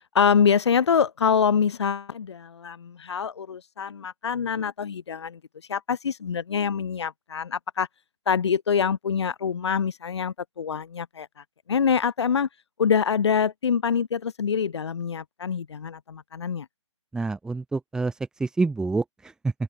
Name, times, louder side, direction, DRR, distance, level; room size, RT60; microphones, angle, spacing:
voice 1, 0.1-5.4 5.7-7.9 8.3-11.3 11.7-12.5 12.8-16.7, left 6 dB, 60° left, 6.5 m, -25 dB
voice 2, 17.1-19.5, right 3 dB, 5° right, 4.9 m, -27 dB
open air
hypercardioid pair, 155°, 16 cm